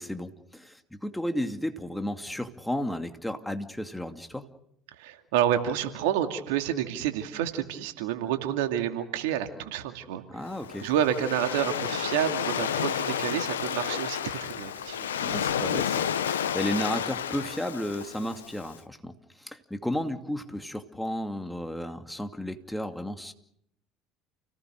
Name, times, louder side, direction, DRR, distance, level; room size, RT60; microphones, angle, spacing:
voice 1, 0.0-4.5 10.3-10.9 15.2-23.3, equal, 5° left, 6 dB, 2.5 m, -33 dB
voice 2, 5.0-10.4 10.8-15.1, right 10 dB, 75° right, 6 dB, 2.4 m, -29 dB
Waves surf, 10.5-18.7, left 9 dB, 85° left, 0.9 m, -31 dB
29.5 x 18.5 x 6.6 m, 0.73 s
hypercardioid pair, 65°, 0 cm